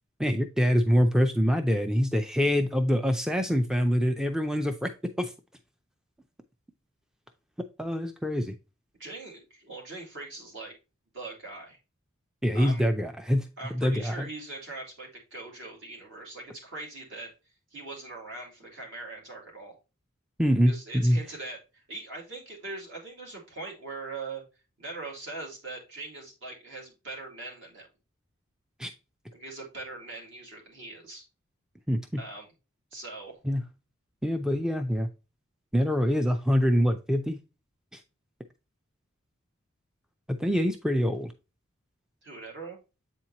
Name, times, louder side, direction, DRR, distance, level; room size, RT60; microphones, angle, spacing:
voice 1, 0.2-4.9 5.2-5.3 7.8-8.5 12.4-13.5 13.7-14.3 20.4-21.2 28.8-28.9 31.9-32.2 33.4-33.6 34.2-35.1 35.7-37.4 37.9-38.0 40.3-41.3, equal, 5° right, 0.3 m, -25 dB
voice 2, 9.0-10.7 11.1-11.8 12.5-12.8 13.6-17.3 17.7-19.8 20.7-24.4 24.8-27.9 29.3-31.2 32.2-32.5 32.9-33.4 42.2-42.8, right 3 dB, 60° right, 2.5 m, -41 dB
7.9 x 4.4 x 2.8 m
head